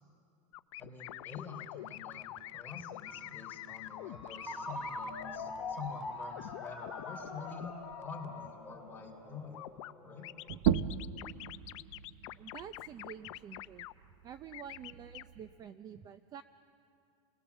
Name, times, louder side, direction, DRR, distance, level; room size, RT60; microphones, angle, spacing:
sound 1, 0.5-8.5 9.5-9.9 10.2-13.9 14.5-15.2, left 16 dB, 65° left, 0.6 m, -46 dB
voice 1, 0.8-2.3 2.5-9.5 10.0-10.3, left 5 dB, 10° left, 0 dB, 3.7 m, -47 dB
Ringtone, 3.1-10.5, left 2 dB, 5° right, 4.2 m, -44 dB
sound 2, 10.5-15.7, right 9 dB, 65° right, 0.8 m, -37 dB
voice 2, 12.3-13.9 14.2-16.4, right 8 dB, 25° right, 11 dB, 0.5 m, -48 dB
30.0 x 20.5 x 7.2 m, 2.5 s
supercardioid pair, 160°, 17 cm